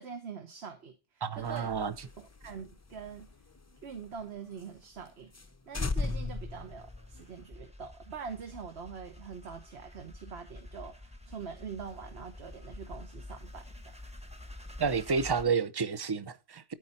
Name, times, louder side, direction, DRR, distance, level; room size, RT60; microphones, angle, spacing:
voice 1, 0.0-1.7 2.0-3.3 3.8-5.3 5.7-13.9, right 6 dB, 65° right, 1.3 m, -44 dB
voice 2, 1.2-1.9 14.8-16.7, right 5 dB, 30° right, 0.5 m, -30 dB
sound 1, 1.4-4.2 4.6-4.7 5.0-5.1 5.3-5.5 5.7-7.4, left 3 dB, 20° left, 0.5 m, -37 dB
sound 2, 5.9-15.4, left 1 dB, 5° right, 1.1 m, -48 dB
13.5 x 5.0 x 4.1 m
omnidirectional pair, 1.2 m